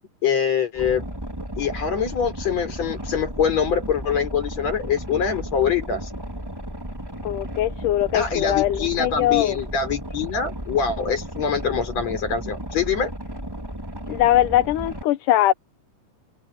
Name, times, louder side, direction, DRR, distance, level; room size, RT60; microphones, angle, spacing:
voice 1, 0.2-1.1 1.6-6.1 8.1-13.1, left 7 dB, 55° left, 5.6 m, -24 dB
Boat Water vehicle, 0.7-15.0, equal, 5° right, 4.2 m, -34 dB
voice 2, 7.2-9.6 14.1-15.5, left 13 dB, 80° left, 2.5 m, -21 dB
omnidirectional pair, 3.7 m